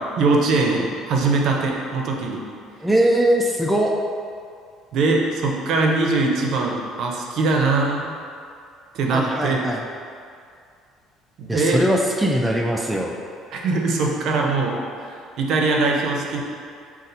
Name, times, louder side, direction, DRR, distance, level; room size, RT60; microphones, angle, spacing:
voice 1, 0.0-2.4 4.9-8.1 8.9-9.6 11.4-11.8 13.5-16.4, right 3 dB, 60° right, 0 dB, 0.6 m, -22 dB
voice 2, 2.8-3.9 9.1-9.8 11.5-13.1, right 1 dB, 5° right, -1 dB, 0.3 m, -21 dB
5.3 x 2.5 x 3.9 m, 2.3 s
cardioid pair, 125°, 0 cm